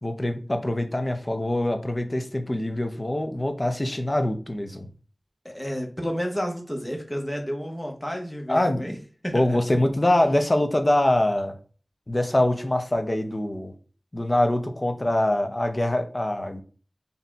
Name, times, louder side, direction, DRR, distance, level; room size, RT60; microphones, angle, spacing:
voice 1, 0.0-4.9 8.5-8.9 9.3-11.5 12.1-13.7 14.1-16.6, left 1 dB, 35° left, 6 dB, 0.7 m, -24 dB
voice 2, 5.4-8.9 9.2-9.6, equal, 20° left, 2 dB, 1.2 m, -31 dB
4.1 x 2.7 x 3.5 m, 0.38 s
wide cardioid pair, 50°, 0 cm